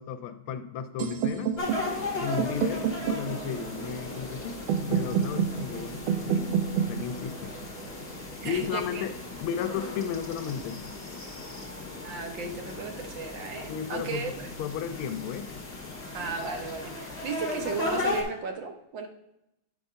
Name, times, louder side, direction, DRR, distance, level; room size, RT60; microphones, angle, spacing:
voice 1, 0.0-1.5 2.2-6.5 6.8-7.5 8.4-9.1 9.4-10.8 13.7-14.3 14.6-15.6, left 8 dB, 90° left, 9 dB, 1.5 m, -34 dB
sound 1, 1.0-8.9, right 7 dB, 80° right, 1.5 m, -31 dB
sound 2, 1.6-18.2, left 2 dB, 30° left, 1.7 m, -37 dB
voice 2, 8.4-9.0 12.0-14.5 16.1-19.1, right 5 dB, 65° right, 4 dB, 1.5 m, -35 dB
8.4 x 3.5 x 5.5 m, 0.86 s
omnidirectional pair, 2.3 m